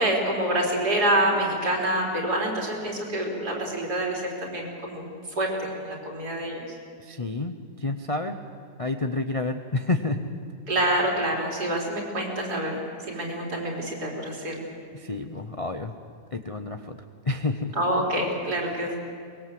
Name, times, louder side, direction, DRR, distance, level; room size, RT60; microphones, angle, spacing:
voice 1, 0.0-5.1 5.4-6.6 10.7-12.8 13.1-14.6 17.8-19.0, right 1 dB, 65° right, -1 dB, 4.5 m, -26 dB
voice 2, 7.0-8.4 8.8-10.3 13.1-13.3 14.9-15.9 16.3-17.0 17.2-17.8, left 2 dB, 35° left, 6 dB, 0.6 m, -29 dB
23.5 x 21.0 x 7.7 m, 2.2 s
omnidirectional pair, 1.8 m